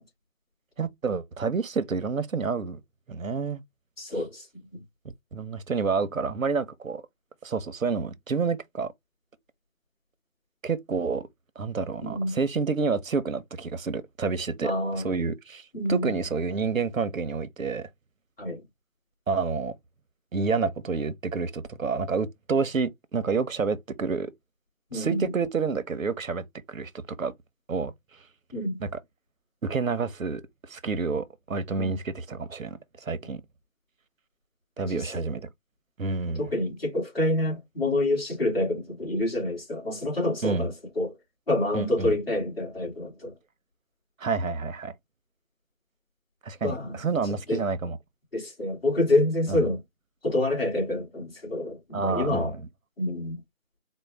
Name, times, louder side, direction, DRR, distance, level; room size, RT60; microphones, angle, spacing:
voice 1, 0.8-2.8 3.1-3.6 5.3-7.0 7.4-8.9 10.6-11.3 11.6-17.9 19.3-19.7 20.3-24.3 24.9-27.3 27.7-27.9 28.8-29.0 29.6-33.4 34.8-35.5 36.0-36.4 40.4-40.7 41.7-42.2 44.2-44.9 46.4-48.0 49.5-49.6 51.9-52.7, right 4 dB, 90° right, 0.8 m, -29 dB
voice 2, 4.0-4.4 12.0-12.4 14.6-15.2 15.7-16.1 18.4-18.6 24.9-25.3 28.5-28.8 31.8-32.0 34.8-35.1 36.4-41.1 41.5-43.3 46.6-46.9 47.5-47.6 48.3-49.8 50.2-52.5 53.0-53.4, left 1 dB, 50° left, 2.6 m, -27 dB
4.4 x 2.1 x 3.3 m
figure-of-eight pair, 170°, 39 cm